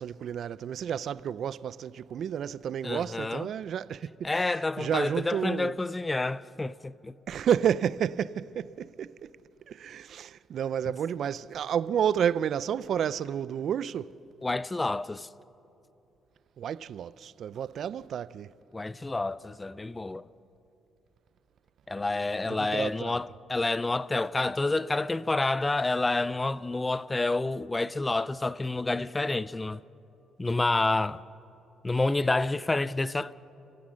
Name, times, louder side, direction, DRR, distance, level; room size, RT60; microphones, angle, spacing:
voice 1, 0.0-5.8 7.3-9.3 9.7-14.2 16.6-18.5 22.4-23.2, right 9 dB, 55° right, 0.4 m, -31 dB
voice 2, 2.8-3.5 4.2-7.1 14.4-15.3 18.7-20.3 21.9-29.8 30.4-31.2 31.8-33.3, left 2 dB, 15° left, 0.4 m, -29 dB
29.0 x 16.0 x 6.3 m
cardioid pair, 150°, 0 cm